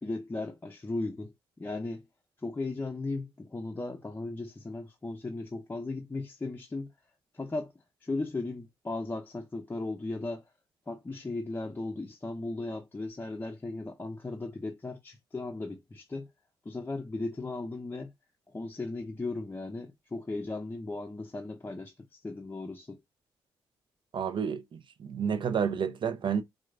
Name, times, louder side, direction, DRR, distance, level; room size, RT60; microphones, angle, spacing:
voice 1, 0.0-2.0 2.4-6.9 7.3-7.7 8.0-10.4 10.9-16.3 16.7-18.1 18.5-23.0, left 2 dB, 20° left, 0.5 m, -36 dB
voice 2, 24.1-26.4, right 7 dB, 55° right, 0.5 m, -30 dB
4.5 x 2.2 x 2.4 m
supercardioid pair, 50°, 10 cm